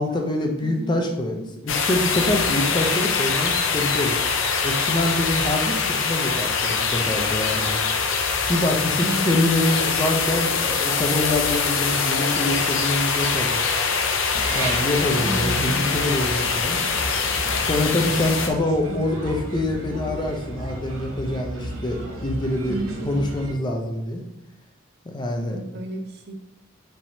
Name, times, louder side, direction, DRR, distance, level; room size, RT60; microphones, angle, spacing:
voice 1, 0.0-4.2 4.6-7.7 8.5-13.6 14.5-16.8 17.6-22.8 23.0-24.3 25.1-25.6, left 1 dB, 20° left, 2 dB, 0.5 m, -25 dB
voice 2, 0.6-1.0 9.0-9.7 15.2-15.9 18.8-19.0 22.7-23.3 25.5-26.3, right 1 dB, 50° right, 4 dB, 0.6 m, -32 dB
sound 1, 1.7-18.5, left 5 dB, 65° left, 0.6 m, -23 dB
sound 2, 14.3-23.5, right 1 dB, 85° right, 0.9 m, -34 dB
5.5 x 3.4 x 2.7 m, 0.85 s
head